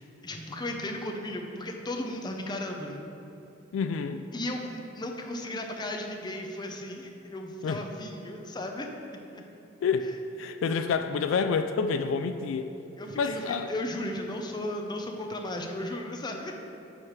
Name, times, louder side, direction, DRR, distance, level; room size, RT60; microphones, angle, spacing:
voice 1, 0.0-3.0 4.3-9.4 13.0-16.5, left 1 dB, 20° left, 2 dB, 0.6 m, -35 dB
voice 2, 3.7-4.2 7.6-7.8 9.8-10.1 10.4-12.7 13.2-13.7, left 5 dB, 70° left, 9 dB, 0.3 m, -28 dB
9.2 x 3.3 x 5.7 m, 2.8 s
head